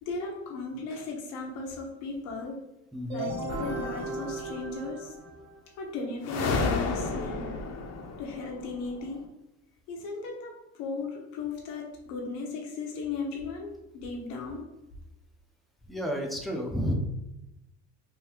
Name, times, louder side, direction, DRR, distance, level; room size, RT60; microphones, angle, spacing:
voice 1, 0.0-2.6 3.1-5.1 5.8-7.5 8.2-9.2 9.9-14.6, left 3 dB, 85° left, 0 dB, 0.8 m, -36 dB
voice 2, 2.9-3.3 15.9-16.9, equal, ahead, 0 dB, 0.5 m, -31 dB
sound 1, 3.1-5.8, right 2 dB, 55° right, 1.1 m, -36 dB
sound 2, 3.5-4.6 6.2-9.1, left 4 dB, 45° left, 0.6 m, -32 dB
3.6 x 2.6 x 2.9 m, 0.93 s
cardioid pair, 120°, 35 cm